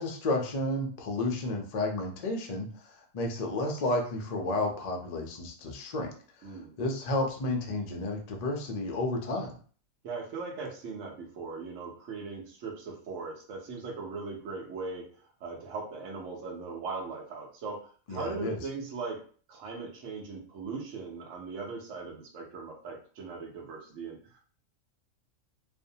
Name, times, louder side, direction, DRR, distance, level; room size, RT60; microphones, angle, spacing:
voice 1, 0.0-2.7 3.1-6.1 6.8-9.5 18.1-18.6, left 2 dB, 65° left, 2 dB, 0.4 m, -31 dB
voice 2, 6.4-6.7 10.0-15.1 15.4-19.2 19.5-24.4, right 4 dB, 70° right, -1 dB, 1.0 m, -39 dB
2.5 x 2.1 x 2.6 m, 0.43 s
omnidirectional pair, 1.4 m